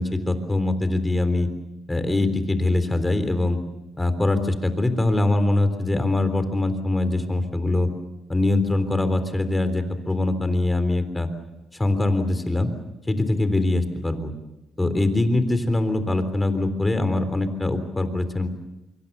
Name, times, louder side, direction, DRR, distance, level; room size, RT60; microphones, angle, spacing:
voice 1, 0.0-1.5 1.9-3.6 4.0-7.9 8.3-11.3 11.7-12.7 13.1-14.3 14.8-18.5, left 2 dB, 15° left, 10 dB, 3.6 m, -23 dB
26.0 x 23.5 x 6.9 m, 0.98 s
cardioid pair, 90°, 0 cm